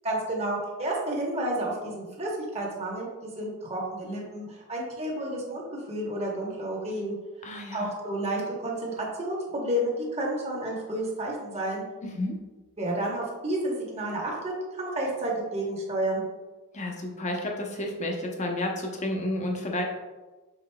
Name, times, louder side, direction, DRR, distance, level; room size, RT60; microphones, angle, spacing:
voice 1, 0.0-7.2 7.7-11.8 12.8-16.2, right 1 dB, 30° right, -2 dB, 1.0 m, -31 dB
voice 2, 7.4-7.9 12.0-12.4 16.7-19.8, left 1 dB, 30° left, 1 dB, 0.7 m, -31 dB
5.8 x 3.9 x 2.2 m, 1.2 s
head